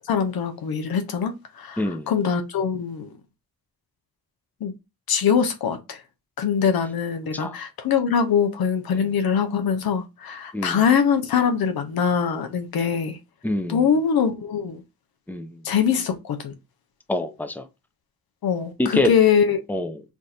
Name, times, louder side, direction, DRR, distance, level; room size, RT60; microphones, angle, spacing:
voice 1, 0.1-3.1 4.6-4.7 5.1-6.0 6.4-13.2 13.7-14.8 15.6-16.5 18.4-19.6, left 7 dB, 85° left, 0.7 m, -23 dB
voice 2, 1.8-2.1 7.3-7.6 8.9-9.1 10.5-10.8 13.4-13.9 15.3-15.6 17.1-17.6 18.8-19.1 19.7-20.0, left 2 dB, 5° left, 0.7 m, -26 dB
3.5 x 2.4 x 4.2 m
cardioid pair, 60°, 36 cm